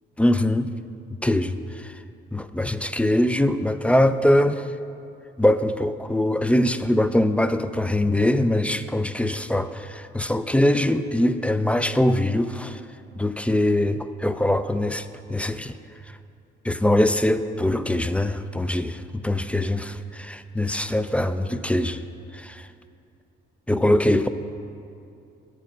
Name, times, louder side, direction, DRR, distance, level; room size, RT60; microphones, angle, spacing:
voice 1, 0.2-0.7 1.2-2.0 2.3-4.7 5.4-12.8 13.2-15.8 16.6-22.0 22.3-22.7 23.7-24.3, left 1 dB, 5° left, 11 dB, 0.3 m, -22 dB
9.3 x 5.6 x 7.1 m, 2.6 s
cardioid pair, 90°, 20 cm